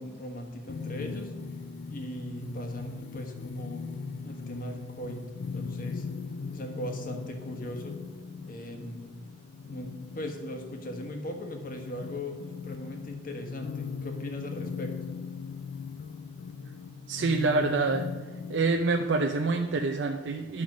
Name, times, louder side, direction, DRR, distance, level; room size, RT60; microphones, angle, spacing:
voice 1, 0.0-1.3 1.9-3.9 4.2-5.2 5.5-6.1 6.5-8.0 8.4-9.1 9.7-14.9, left 1 dB, 50° left, 4 dB, 1.4 m, -39 dB
sound 1, 0.7-18.7, left 5 dB, 70° left, 0.5 m, -39 dB
voice 2, 17.1-18.1 18.5-20.6, right 3 dB, 75° right, 4 dB, 0.6 m, -26 dB
9.9 x 6.1 x 6.2 m, 1.4 s
head